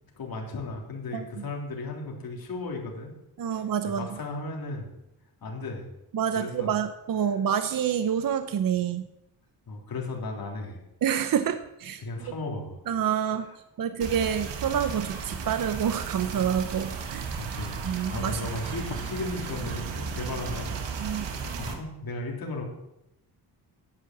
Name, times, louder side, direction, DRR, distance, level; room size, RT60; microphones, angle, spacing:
voice 1, 0.1-3.1 3.8-4.9 5.4-5.9 6.3-6.7 9.7-10.8 12.0-12.8 13.4-13.5 17.4-17.8 18.1-20.8 21.1-22.6, left 2 dB, 55° left, 0 dB, 3.4 m, -35 dB
voice 2, 1.1-1.4 3.4-4.2 6.1-9.0 11.0-12.0 12.9-13.5 13.8-17.3 17.8-18.5 21.0-21.2, right 8 dB, 50° right, 10 dB, 0.8 m, -27 dB
sound 1, 14.0-21.7, right 5 dB, 85° right, 1.9 m, -34 dB
11.0 x 8.8 x 7.4 m, 0.87 s
cardioid pair, 120°, 42 cm